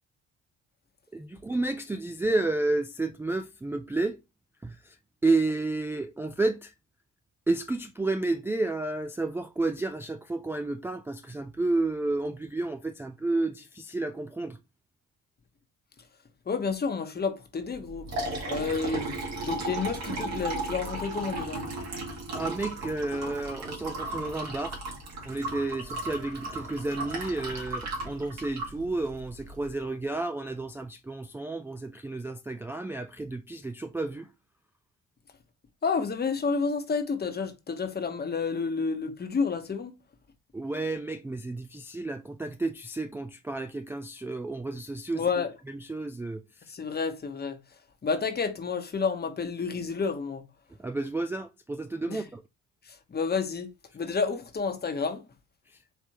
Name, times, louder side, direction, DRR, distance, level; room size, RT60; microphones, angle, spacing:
voice 1, 1.1-4.2 4.6-5.0 5.2-6.7 7.5-14.6 22.3-24.8 25.3-34.3 40.5-45.3 45.7-46.7 50.8-52.4 55.7-55.8, right 2 dB, 10° right, 0.3 m, -31 dB
voice 2, 16.5-18.1 18.5-21.6 35.8-39.9 45.2-45.5 46.7-47.6 48.0-50.4 52.1-52.2 52.8-55.2, left 5 dB, 30° left, 1.0 m, -30 dB
Liquid, 17.7-29.7, right 2 dB, 60° right, 2.0 m, -35 dB
4.6 x 3.3 x 2.9 m
cardioid pair, 90°, 30 cm